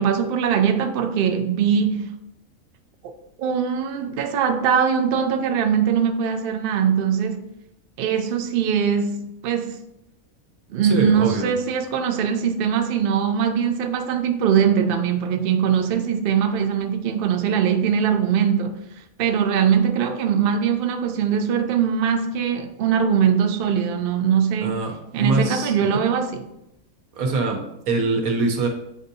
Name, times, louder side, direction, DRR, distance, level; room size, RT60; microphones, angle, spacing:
voice 1, 0.0-2.1 3.4-7.5 8.0-9.8 10.7-18.8 19.2-24.8 25.1-26.5, right 7 dB, 70° right, 0.5 m, -21 dB
voice 2, 10.9-11.5 24.6-26.0 27.1-28.7, right 3 dB, 85° right, 1.3 m, -24 dB
7.4 x 2.6 x 2.6 m
omnidirectional pair, 1.5 m